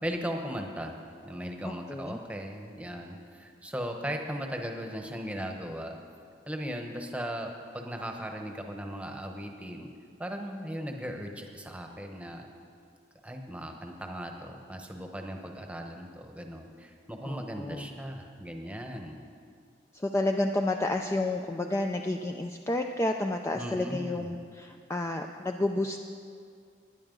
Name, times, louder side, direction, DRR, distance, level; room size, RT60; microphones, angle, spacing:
voice 1, 0.0-1.0 1.2-6.0 6.5-9.9 10.2-12.5 13.2-19.2 23.6-24.3, equal, 5° right, 3 dB, 1.0 m, -37 dB
voice 2, 1.6-2.2 17.2-17.9 19.9-26.0, left 2 dB, 15° left, 4 dB, 0.4 m, -30 dB
19.5 x 10.0 x 3.9 m, 2.3 s
head